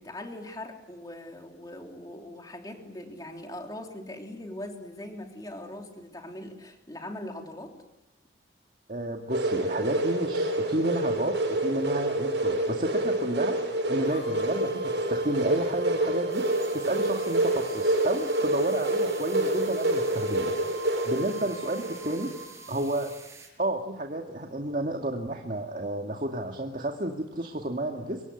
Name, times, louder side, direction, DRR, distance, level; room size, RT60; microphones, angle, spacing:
voice 1, 0.0-7.7, left 1 dB, 20° left, 2 dB, 3.4 m, -41 dB
voice 2, 8.9-20.8 21.0-22.3 22.7-23.1 23.6-28.3, right 1 dB, 45° right, 3 dB, 2.1 m, -31 dB
sound 1, 9.3-22.4, right 1 dB, 85° right, 7.7 m, -28 dB
sound 2, 14.0-22.7, right 4 dB, 45° left, 6.9 m, -44 dB
sound 3, 16.3-23.5, right 4 dB, 15° right, 6.3 m, -48 dB
28.0 x 24.5 x 8.0 m, 0.96 s
head